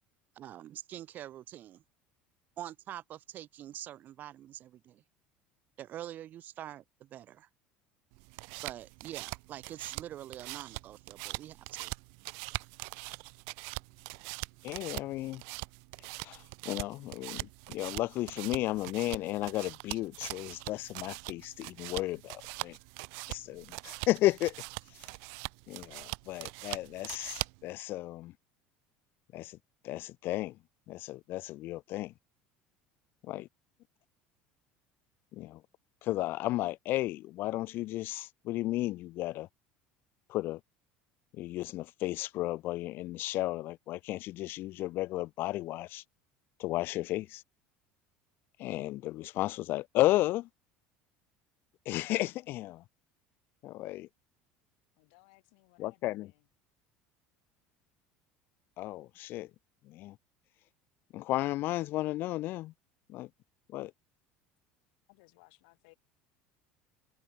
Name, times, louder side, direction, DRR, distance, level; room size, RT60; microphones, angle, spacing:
voice 1, 0.4-1.8 2.6-5.0 5.8-7.5 8.6-11.9, right 12 dB, 40° right, 0.7 m, -45 dB
sound 1, 8.1-27.7, right 40 dB or more, 70° right, 0.6 m, -42 dB
voice 2, 14.6-15.4 16.2-22.8 23.3-24.5 24.9-25.1 25.7-28.3 29.3-29.6 29.8-30.6 30.9-32.1 33.2-33.5 35.3-35.6 36.0-39.5 40.3-40.6 41.3-46.0 46.6-47.4 48.6-50.5 51.9-52.8 53.6-54.1 55.8-56.3 58.8-59.5 59.9-60.2 61.1-62.7 63.1-63.3 63.7-63.9, left 17 dB, 50° left, 0.4 m, -33 dB
voice 3, 54.9-56.5 65.1-65.9, left 31 dB, 80° left, 7.9 m, -62 dB
cardioid pair, 150°, 5 cm